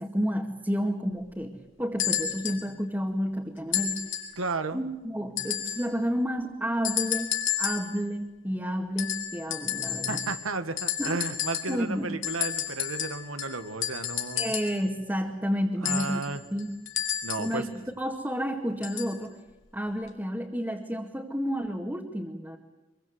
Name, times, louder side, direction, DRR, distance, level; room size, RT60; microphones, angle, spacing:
voice 1, 0.0-4.0 4.7-10.2 11.0-11.2 11.7-12.1 14.4-16.2 16.5-16.7 17.4-17.7 18.0-19.4 19.7-22.6, equal, 10° right, -1 dB, 2.0 m, -30 dB
sound 1, 2.0-2.6 3.7-4.4 5.4-5.9 6.8-7.9 9.0-10.5 10.8-11.8 12.2-14.8 15.8-17.6 18.8-19.2 20.1-20.2, left 10 dB, 75° left, 4.8 m, -31 dB
voice 2, 4.4-4.8 10.1-14.5 15.8-16.4 17.2-17.7, right 3 dB, 85° right, 9 dB, 2.0 m, -33 dB
25.5 x 23.0 x 8.1 m, 1.1 s
head